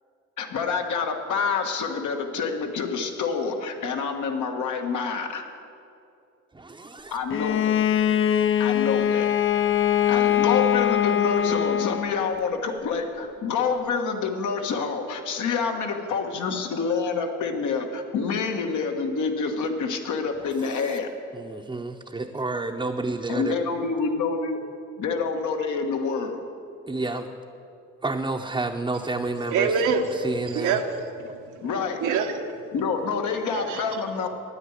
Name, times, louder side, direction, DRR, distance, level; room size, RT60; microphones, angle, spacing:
voice 1, 0.4-5.5 7.1-7.7 8.6-9.3 10.1-21.1 23.3-24.6 25.0-26.4 31.6-32.0 32.7-34.3, left 5 dB, 75° left, 4 dB, 1.5 m, -27 dB
voice 2, 6.5-7.2 20.4-21.0 21.3-23.6 26.9-27.3 28.0-30.8, right 3 dB, 15° right, 1 dB, 0.7 m, -30 dB
Bowed string instrument, 7.3-12.4, left 9 dB, 45° left, 0.5 m, -22 dB
voice 3, 29.5-30.0 30.5-30.8 31.2-31.6 32.0-32.6 33.5-33.8, right 6 dB, 85° right, 3 dB, 1.2 m, -25 dB
9.8 x 9.6 x 9.7 m, 2.5 s
cardioid pair, 90°, 30 cm